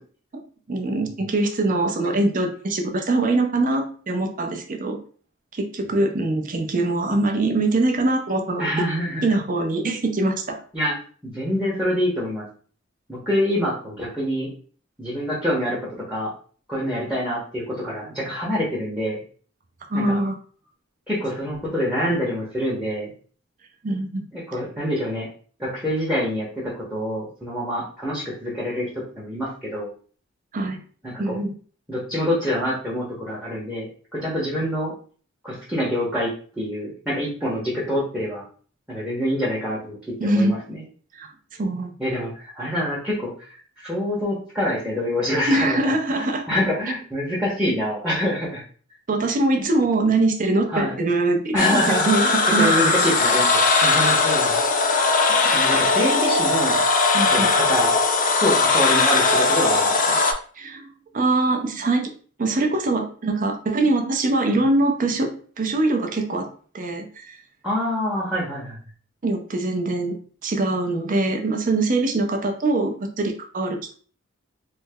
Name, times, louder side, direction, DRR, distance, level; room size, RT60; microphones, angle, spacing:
voice 1, 0.7-5.0 5.5-8.7 9.2-10.6 19.9-20.3 23.8-24.2 30.5-30.8 31.2-31.5 40.2-40.5 41.1-41.3 41.6-41.9 45.5-46.5 49.1-52.8 57.1-57.5 60.6-60.9 61.1-62.1 62.4-65.3 65.6-66.5 66.7-67.4 69.2-70.2 70.4-73.9, right 2 dB, 40° right, 4 dB, 0.6 m, -23 dB
voice 2, 8.6-9.3 10.7-11.0 11.2-12.5 13.1-14.5 15.0-16.3 16.7-19.2 19.9-20.2 21.1-23.1 24.3-25.3 25.6-29.9 31.0-31.4 31.9-34.9 35.4-36.3 36.6-38.4 38.9-40.8 42.0-48.6 50.7-51.0 51.5-55.0 55.4-56.8 57.3-57.9 58.4-60.2 64.5-64.6 67.6-68.8, equal, 5° right, -5 dB, 0.9 m, -26 dB
sound 1, 51.6-60.3, left 3 dB, 40° left, 0.5 m, -19 dB
3.2 x 2.1 x 3.4 m, 0.43 s
head